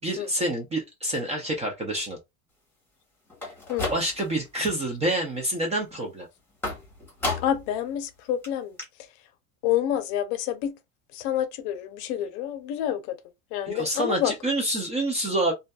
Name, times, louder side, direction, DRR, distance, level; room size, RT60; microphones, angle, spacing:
voice 1, 0.0-2.2 3.9-6.3 13.7-15.5, right 1 dB, 15° right, 0.4 m, -27 dB
sound 1, 3.3-4.5 4.8-5.3 6.6-7.7 8.1-8.2 8.4-8.5 8.8-8.9, left 2 dB, 5° left, 1.1 m, -33 dB
voice 2, 7.4-8.8 9.6-10.7 11.1-13.2 13.5-14.3, left 11 dB, 55° left, 0.6 m, -28 dB
2.6 x 2.2 x 2.2 m
supercardioid pair, 135°, 44 cm